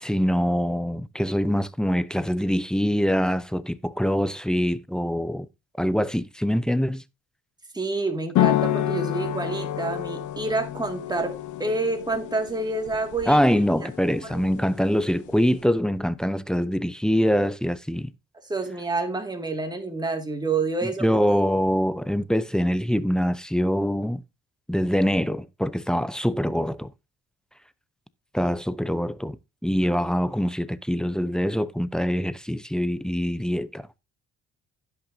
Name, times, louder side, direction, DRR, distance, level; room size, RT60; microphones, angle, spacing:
voice 1, 0.0-5.5 5.8-7.0 13.3-18.1 20.8-24.2 24.7-26.9 28.3-29.4 29.6-33.8, equal, ahead, 0.5 m, -24 dB
voice 2, 7.7-13.4 13.8-13.9 14.2-14.4 18.3-21.2, right 3 dB, 15° right, 2.1 m, -28 dB
sound 1, 8.3-15.6, left 12 dB, 80° left, 1.0 m, -29 dB
16.0 x 5.8 x 2.7 m
cardioid pair, 90°, 30 cm